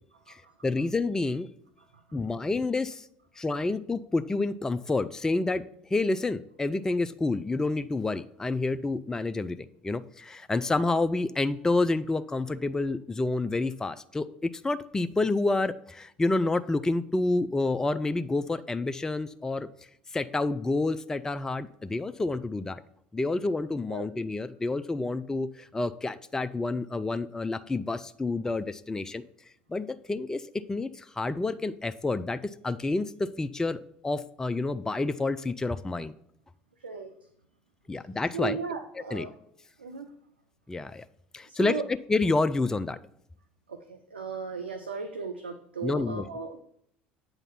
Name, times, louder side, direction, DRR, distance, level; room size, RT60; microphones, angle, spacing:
voice 1, 0.3-1.5 2.1-3.1 3.4-19.7 20.1-22.8 23.1-29.2 29.7-36.1 37.9-38.6 39.1-39.3 40.7-41.0 41.3-43.0 45.8-46.3, left 3 dB, 10° left, 13 dB, 0.3 m, -29 dB
voice 2, 36.8-37.1 38.3-39.3 39.8-40.1 41.5-41.9 43.7-46.6, right 5 dB, 80° right, 6 dB, 0.5 m, -36 dB
8.2 x 3.9 x 5.6 m, 0.70 s
figure-of-eight pair, 65°, 6 cm